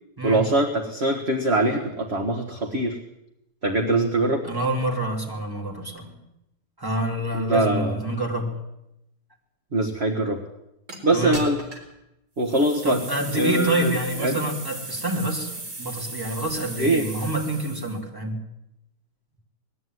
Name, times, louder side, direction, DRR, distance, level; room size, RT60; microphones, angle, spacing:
voice 1, 0.2-3.0 3.6-4.4 7.3-8.0 9.7-10.4 11.0-11.6 12.4-13.0 13.3-13.9 14.2-14.4 16.8-17.1, right 2 dB, 40° right, 4 dB, 1.8 m, -23 dB
voice 2, 4.4-6.2 6.8-8.5 11.1-11.4 12.8-15.5 15.8-18.4, right 1 dB, 10° right, 0 dB, 3.7 m, -27 dB
sound 1, 10.9-11.0 11.3-11.9 12.4-18.0, right 2 dB, 70° right, 4.8 m, -37 dB
20.0 x 14.0 x 9.5 m, 0.86 s
omnidirectional pair, 1.8 m